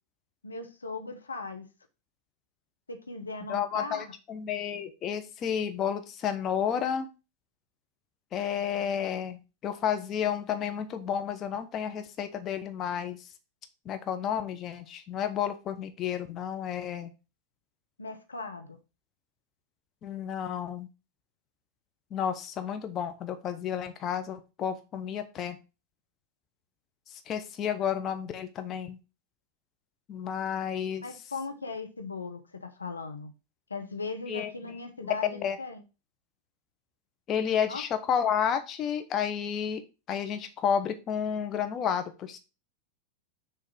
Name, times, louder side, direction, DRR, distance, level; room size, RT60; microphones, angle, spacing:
voice 1, 0.4-1.7 2.9-4.1 18.0-18.8 31.0-33.3 33.7-35.8 37.7-37.8, left 3 dB, 75° left, 0.9 m, -38 dB
voice 2, 3.5-7.1 8.3-13.2 13.8-17.1 20.0-20.9 22.1-25.6 27.1-29.0 30.1-31.0 34.3-34.5 35.0-35.6 37.3-39.8 40.1-42.4, left 8 dB, 30° left, 1.0 m, -31 dB
6.6 x 3.5 x 6.2 m
figure-of-eight pair, 90°, 0 cm